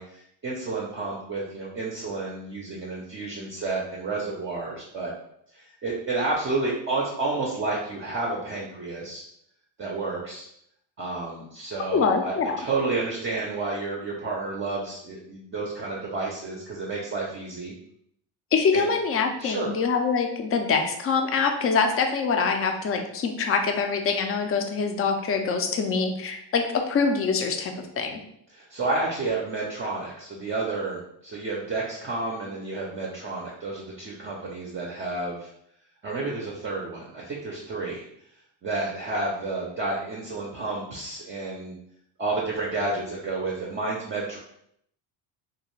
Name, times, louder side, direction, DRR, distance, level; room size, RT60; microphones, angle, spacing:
voice 1, 0.0-5.1 5.5-9.2 9.8-10.5 11.0-17.7 18.7-18.9 19.4-19.7 28.5-35.5 36.0-38.0 38.6-41.7 42.2-44.4, right 3 dB, 25° right, -3 dB, 0.5 m, -30 dB
voice 2, 11.9-12.6 18.5-28.2, left 5 dB, 35° left, 5 dB, 0.3 m, -24 dB
2.4 x 2.2 x 3.0 m, 0.73 s
cardioid pair, 100°, 47 cm